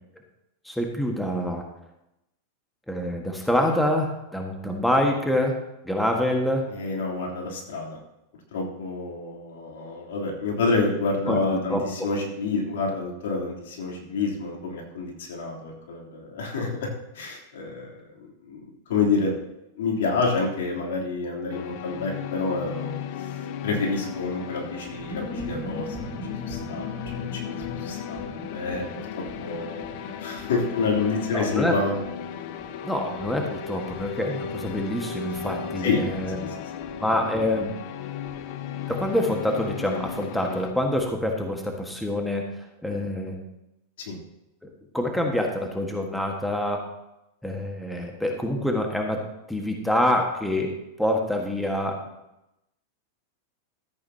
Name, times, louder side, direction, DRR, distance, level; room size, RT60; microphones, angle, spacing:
voice 1, 0.6-1.6 2.9-6.7 11.3-11.4 11.7-12.1 31.3-31.8 32.8-36.4 37.0-37.8 38.9-42.5 42.8-43.4 44.6-46.8 47.4-49.2 49.5-52.0, left 1 dB, 5° left, 1 dB, 1.6 m, -26 dB
voice 2, 6.7-8.0 8.5-16.9 17.1-19.3 19.8-23.0 23.6-26.9 27.1-28.9 29.4-32.0 35.8-36.0 36.4-36.9 44.0-44.2, left 3 dB, 75° left, -1 dB, 3.3 m, -28 dB
sound 1, 21.5-40.7, left 8 dB, 55° left, 0.8 m, -36 dB
sound 2, 24.9-41.2 41.4-41.5 41.7-42.1, left 2 dB, 25° left, 2.7 m, -41 dB
14.0 x 8.7 x 2.9 m, 0.88 s
hypercardioid pair, 115°, 0 cm